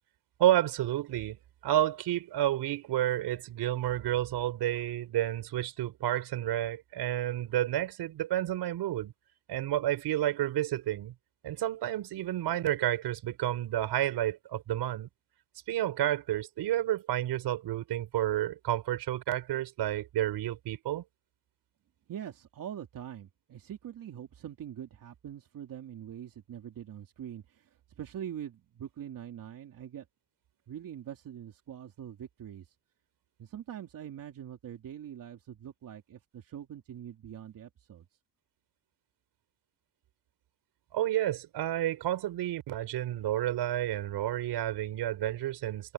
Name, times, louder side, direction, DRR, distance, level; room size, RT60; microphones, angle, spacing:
voice 1, 0.4-1.4 1.6-9.1 9.5-11.1 11.4-15.1 15.7-21.0 40.9-45.9, right 13 dB, 70° right, 4.7 m, -30 dB
voice 2, 22.1-30.1 30.7-32.7 33.4-38.1, right 10 dB, 50° right, 3.0 m, -43 dB
cardioid pair, 130°, 42 cm